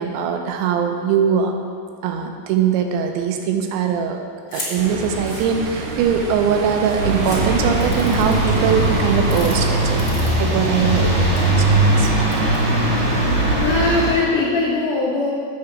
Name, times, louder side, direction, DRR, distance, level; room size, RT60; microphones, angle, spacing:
voice 1, 0.0-1.5 2.0-4.2 4.5-12.1, right 7 dB, 85° right, 4 dB, 3.0 m, -21 dB
sound 1, 4.5-4.7 5.1-6.0 6.6-6.7 6.9-7.4 7.8-8.5 9.1-9.5 10.0-10.8 11.1-11.4 12.0-12.6, left 3 dB, 45° left, 2.0 m, -34 dB
Ocean, 4.8-10.0, right 3 dB, 65° right, 2.3 m, -27 dB
sound 2, 7.0-14.1, right 2 dB, 50° right, 2.1 m, -19 dB
voice 2, 13.1-15.3, left 3 dB, 85° left, -5 dB, 1.8 m, -21 dB
8.6 x 5.5 x 6.0 m, 2.2 s
omnidirectional pair, 5.2 m